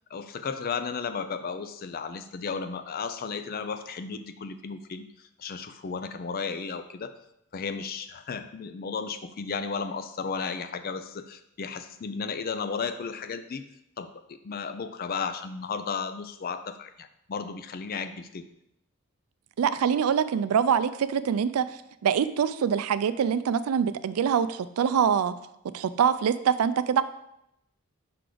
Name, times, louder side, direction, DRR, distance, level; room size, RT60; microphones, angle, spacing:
voice 1, 0.1-7.2 7.5-13.6 14.0-18.4, left 5 dB, 45° left, 10 dB, 0.4 m, -34 dB
voice 2, 19.6-25.3 25.7-27.0, right 7 dB, 90° right, 14 dB, 0.4 m, -24 dB
5.8 x 3.8 x 5.0 m, 0.81 s
head